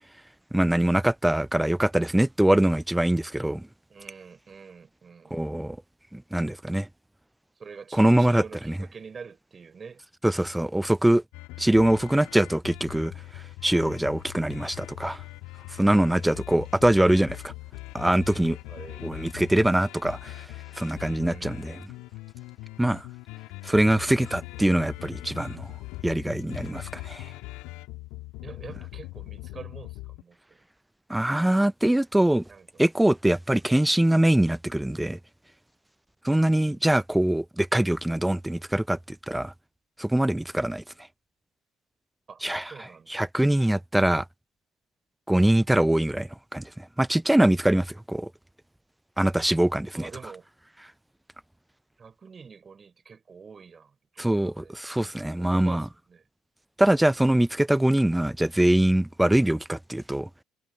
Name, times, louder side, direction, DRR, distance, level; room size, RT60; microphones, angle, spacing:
voice 1, 0.5-3.7 5.3-5.8 6.1-6.9 7.9-8.4 10.2-11.2 11.6-15.2 15.8-17.5 17.9-18.6 19.0-20.5 20.8-21.8 22.8-23.1 23.6-25.7 26.0-27.3 31.1-32.4 32.8-35.2 36.2-39.0 39.3-39.5 40.0-40.8 42.4-42.7 43.1-44.2 45.3-48.3 49.2-50.1 54.2-55.8 56.8-60.3, right 1 dB, 5° right, 0.3 m, -23 dB
voice 2, 3.9-5.4 7.6-10.0 18.7-19.1 21.2-21.7 28.4-30.4 32.5-32.7 36.2-36.8 42.3-43.2 49.9-50.5 52.0-56.2, right 5 dB, 30° right, 5.5 m, -46 dB
sound 1, 11.3-30.2, left 21 dB, 65° left, 2.5 m, -41 dB
hypercardioid pair, 60°, 0 cm